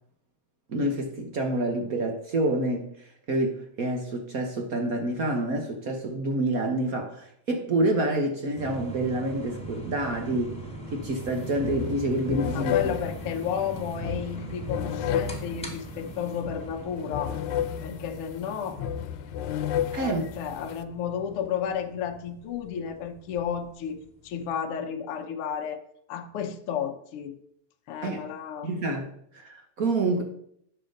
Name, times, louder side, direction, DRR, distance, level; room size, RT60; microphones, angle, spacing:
voice 1, 0.7-10.6 10.9-12.9 19.9-20.2 28.0-28.2 28.6-29.1 29.3-30.2, right 1 dB, 70° right, 4 dB, 0.8 m, -28 dB
sound 1, 8.6-24.5, right 2 dB, ahead, 1.8 m, -42 dB
sound 2, 11.2-11.3 11.6-20.8, left 9 dB, 90° left, 2.1 m, -32 dB
voice 2, 12.5-17.4 17.8-18.8 20.0-25.8 26.1-27.3 27.9-28.7, left 8 dB, 60° left, 4 dB, 1.7 m, -32 dB
9.8 x 6.9 x 5.2 m, 0.69 s
omnidirectional pair, 3.3 m